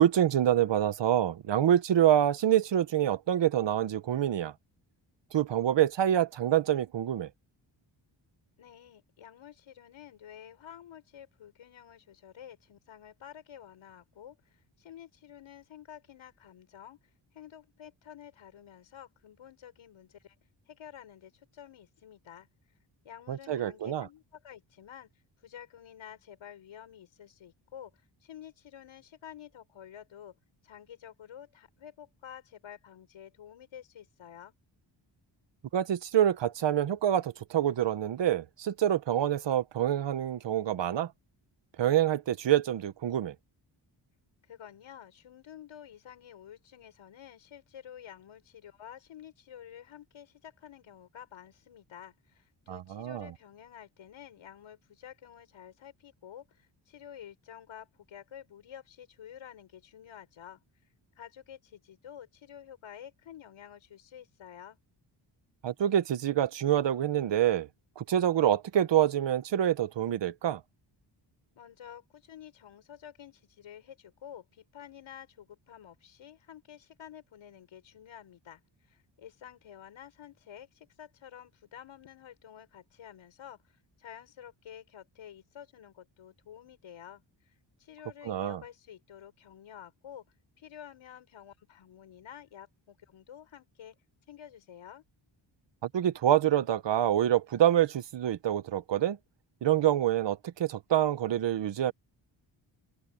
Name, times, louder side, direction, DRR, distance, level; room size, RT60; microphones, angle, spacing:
voice 1, 0.0-4.5 5.3-7.3 23.3-24.1 35.7-41.1 41.8-43.3 52.7-53.3 65.6-67.7 68.0-70.6 88.3-88.6 95.9-99.2 99.6-101.9, right 11 dB, 65° right, 1.1 m, -26 dB
voice 2, 8.6-17.0 17.3-20.3 20.7-22.5 23.0-25.1 25.4-27.9 28.2-30.3 30.6-34.5 44.4-60.6 61.2-64.8 71.5-78.6 78.9-87.2 87.8-90.2 90.6-94.0 94.3-95.0, left 9 dB, 90° left, 6.3 m, -50 dB
wide cardioid pair, 130°, 46 cm